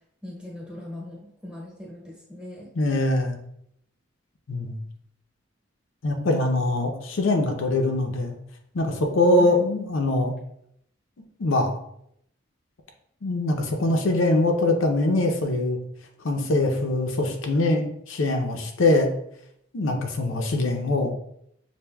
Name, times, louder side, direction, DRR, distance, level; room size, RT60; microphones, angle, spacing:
voice 1, 0.2-2.7 9.4-9.6, left 1 dB, 5° right, -4 dB, 1.1 m, -39 dB
voice 2, 2.8-3.4 4.5-4.8 6.0-8.4 8.7-10.3 11.4-11.7 13.2-15.8 16.2-19.1 19.7-21.1, left 2 dB, 75° left, 3 dB, 0.6 m, -23 dB
6.7 x 2.6 x 2.3 m, 0.72 s
head